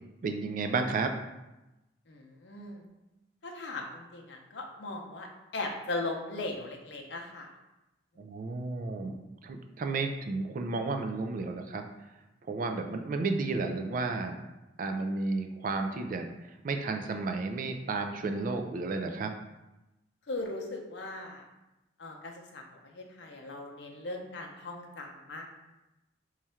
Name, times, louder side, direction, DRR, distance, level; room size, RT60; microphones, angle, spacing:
voice 1, 0.2-1.1 8.2-9.2 9.4-11.8 12.5-14.4 14.8-16.3 16.6-19.3, right 3 dB, 50° right, 5 dB, 0.3 m, -32 dB
voice 2, 2.1-2.9 3.4-7.5 20.3-21.4 22.0-25.6, left 2 dB, 75° left, 1 dB, 0.6 m, -39 dB
3.2 x 2.4 x 4.2 m, 0.98 s
head